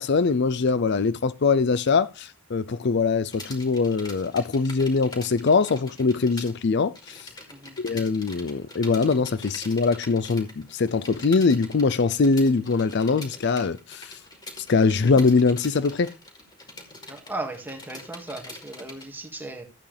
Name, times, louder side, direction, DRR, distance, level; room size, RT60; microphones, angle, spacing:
voice 1, 0.0-7.3 7.8-14.2 14.7-16.1, left 4 dB, 50° left, 0.4 m, -22 dB
sound 1, 3.3-6.5 6.8-19.1, left 2 dB, 20° left, 2.5 m, -44 dB
voice 2, 17.1-19.6, right 2 dB, 10° right, 1.8 m, -36 dB
13.5 x 8.4 x 3.3 m
head